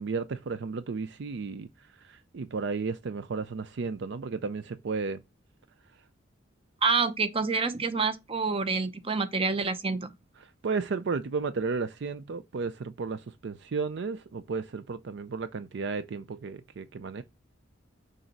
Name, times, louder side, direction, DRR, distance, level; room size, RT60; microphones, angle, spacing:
voice 1, 0.0-1.7 2.1-5.2 10.6-17.2, right 4 dB, 65° right, 0.4 m, -33 dB
voice 2, 6.8-10.1, right 4 dB, 30° right, 0.7 m, -27 dB
6.4 x 4.0 x 4.5 m
head